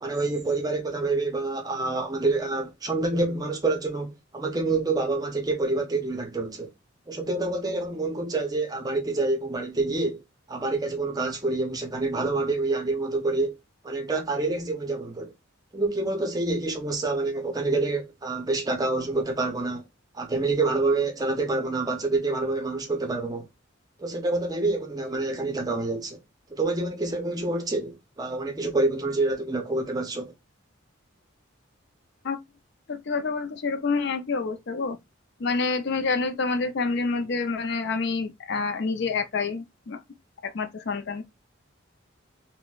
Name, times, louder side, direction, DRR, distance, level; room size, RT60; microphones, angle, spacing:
voice 1, 0.0-6.7 7.1-10.2 10.5-13.6 13.8-15.3 15.7-19.8 20.1-23.5 24.0-26.2 26.5-30.3, right 3 dB, 20° right, 0.6 m, -27 dB
voice 2, 32.9-35.0 35.4-40.0 40.4-41.2, left 4 dB, 55° left, 0.4 m, -28 dB
4.1 x 2.1 x 2.3 m
head